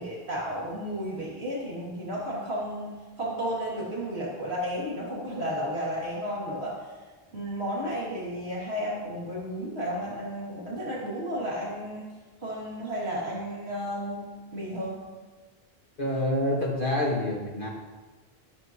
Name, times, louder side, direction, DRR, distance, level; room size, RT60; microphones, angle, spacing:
voice 1, 0.0-2.9 3.2-6.9 7.3-12.0 12.4-15.0, equal, 85° right, -6 dB, 3.1 m, -33 dB
voice 2, 16.0-17.7, left 1 dB, 55° left, -3 dB, 2.5 m, -27 dB
13.5 x 12.5 x 3.1 m, 1.3 s
omnidirectional pair, 1.0 m